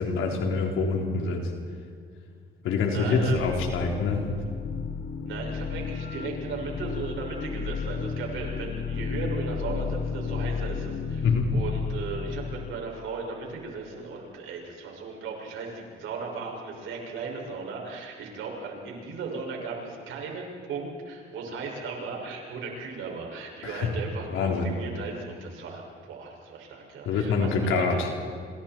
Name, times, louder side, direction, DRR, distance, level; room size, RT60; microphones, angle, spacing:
voice 1, 0.0-1.5 2.6-4.2 11.2-11.5 23.6-23.9 24.3-24.7 27.1-28.1, left 4 dB, 90° left, 1 dB, 3.6 m, -25 dB
voice 2, 2.9-3.4 5.3-27.9, right 4 dB, 85° right, 0 dB, 6.3 m, -36 dB
sound 1, 3.2-13.0, left 5 dB, 50° left, 1.3 m, -33 dB
27.5 x 27.0 x 4.5 m, 2.2 s
cardioid pair, 90°, 20 cm